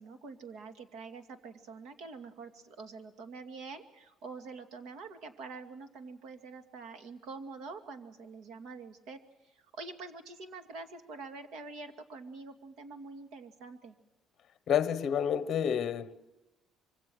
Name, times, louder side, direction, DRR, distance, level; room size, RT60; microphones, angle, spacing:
voice 1, 0.0-14.0, right 4 dB, 75° right, 2.3 m, -46 dB
voice 2, 14.7-16.1, left 8 dB, 40° left, 1.1 m, -29 dB
25.5 x 24.0 x 6.3 m
cardioid pair, 170°, 0 cm